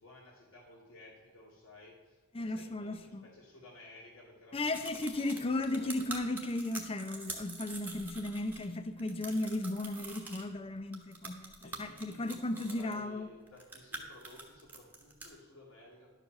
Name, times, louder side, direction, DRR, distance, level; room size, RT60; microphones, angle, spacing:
voice 1, 0.0-6.0 8.1-8.3 11.6-16.1, left 1 dB, 75° left, -7 dB, 2.8 m, -55 dB
voice 2, 2.3-3.3 4.5-13.3, left 2 dB, 25° left, 9 dB, 0.5 m, -35 dB
sound 1, 4.7-8.7 9.0-10.5 10.9-12.9 13.5-15.3, right 3 dB, 10° right, 1.2 m, -45 dB
11.5 x 5.0 x 6.6 m, 1.4 s
head